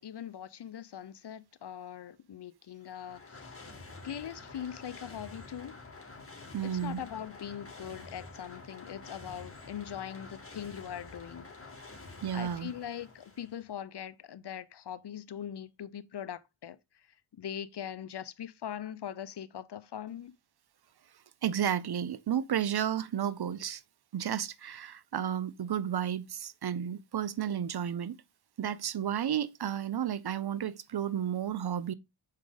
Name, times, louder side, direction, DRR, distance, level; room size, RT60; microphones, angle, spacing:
voice 1, 0.0-3.8 4.0-5.8 6.6-11.5 12.3-17.1 17.4-20.3, left 9 dB, 55° left, 0.7 m, -41 dB
sound 1, 2.8-13.7, left 3 dB, 25° left, 2.1 m, -49 dB
voice 2, 6.5-7.0 12.2-12.7 21.4-23.8 24.1-28.2 28.6-31.9, right 9 dB, 50° right, 0.6 m, -32 dB
6.5 x 4.7 x 3.9 m
cardioid pair, 55°, 49 cm